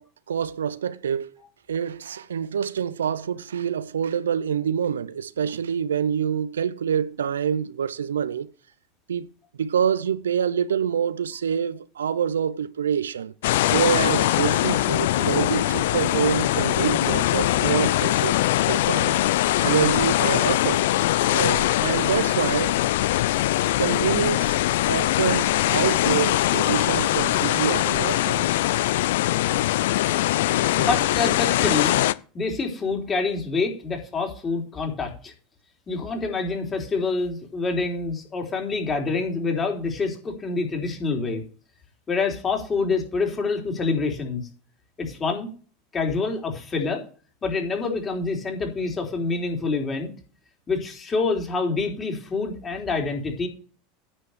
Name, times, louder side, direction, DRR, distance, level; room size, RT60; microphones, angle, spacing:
voice 1, 0.0-1.3 1.7-8.5 9.1-9.3 9.6-13.3 13.7-18.3 18.7-19.2 19.6-20.9 21.3-22.8 23.8-24.6 24.9-28.5, right 8 dB, 80° right, 0.5 m, -26 dB
sound 1, 13.4-32.1, left 15 dB, 70° left, 0.4 m, -22 dB
voice 2, 30.5-31.9 32.3-35.3 35.9-41.4 42.1-44.5 45.0-45.5 45.9-47.0 47.4-50.1 50.7-53.5, left 4 dB, 25° left, 3.7 m, -26 dB
9.8 x 5.5 x 6.7 m
hypercardioid pair, 85°, 0 cm